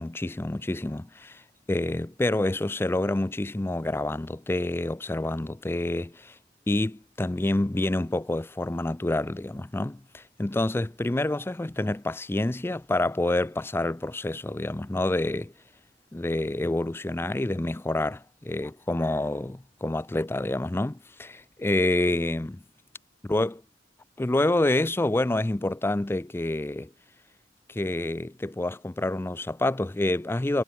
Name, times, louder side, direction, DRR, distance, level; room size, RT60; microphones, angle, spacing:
voice 1, 0.0-1.4 1.7-6.4 6.7-15.5 16.1-22.6 23.3-23.6 24.2-26.9 27.7-30.6, left 1 dB, 15° left, 0.4 m, -27 dB
head